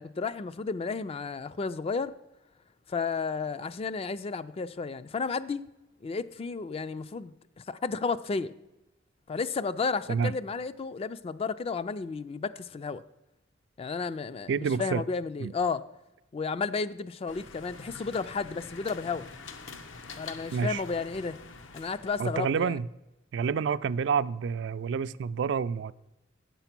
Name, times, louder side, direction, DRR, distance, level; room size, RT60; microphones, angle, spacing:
voice 1, 0.0-2.1 2.9-5.6 6.0-8.5 9.3-13.0 13.8-15.8 16.3-19.3 20.2-21.4 21.7-22.8, left 4 dB, 30° left, 0.3 m, -32 dB
voice 2, 14.5-15.0 15.4-15.5 20.5-20.8 22.2-22.9 23.3-25.9, right 6 dB, 65° right, 0.3 m, -28 dB
sound 1, 17.3-22.5, left 4 dB, 75° left, 0.8 m, -46 dB
8.6 x 6.9 x 5.9 m
head